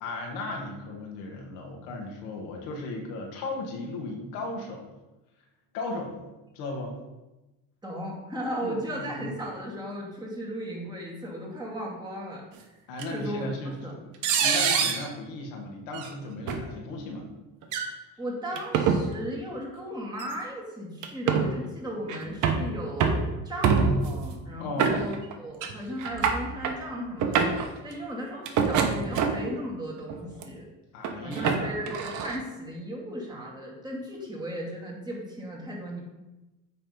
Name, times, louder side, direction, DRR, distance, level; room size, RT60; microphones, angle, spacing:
voice 1, 0.0-4.9 5.7-6.2 6.5-7.0 8.6-9.3 12.9-13.8 14.4-17.3 24.6-25.1 30.9-31.9, left 2 dB, 90° left, 1 dB, 1.7 m, -36 dB
voice 2, 7.8-12.7 13.1-14.0 18.2-27.6 27.8-30.7 31.2-36.0, equal, 10° right, -3 dB, 2.2 m, -36 dB
sound 1, 13.0-13.1 14.2-15.1 15.9-16.1 16.5-16.6 17.6-17.9 18.6-19.0 20.2-20.3 21.0-21.5 22.1-22.7 23.0-23.3 23.6-24.1 24.8-25.3 25.6-25.7 26.0-26.8 27.2-27.7 28.5-29.5 30.1-30.4 31.0-32.4, right 6 dB, 60° right, 1.0 m, -25 dB
8.7 x 3.5 x 5.3 m, 1.0 s
cardioid pair, 110°, 34 cm